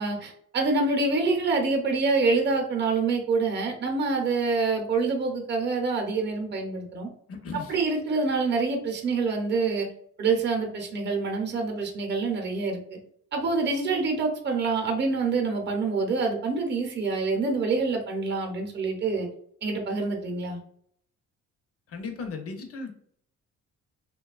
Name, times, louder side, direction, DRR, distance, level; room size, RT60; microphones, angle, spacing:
voice 1, 0.0-7.1 7.5-9.9 10.2-13.0 13.3-19.3 19.6-20.6, right 4 dB, 35° right, 2 dB, 0.7 m, -26 dB
voice 2, 7.3-7.7 21.9-22.9, left 4 dB, 50° left, 4 dB, 0.7 m, -36 dB
2.7 x 2.2 x 2.3 m, 0.64 s
cardioid pair, 90°, 30 cm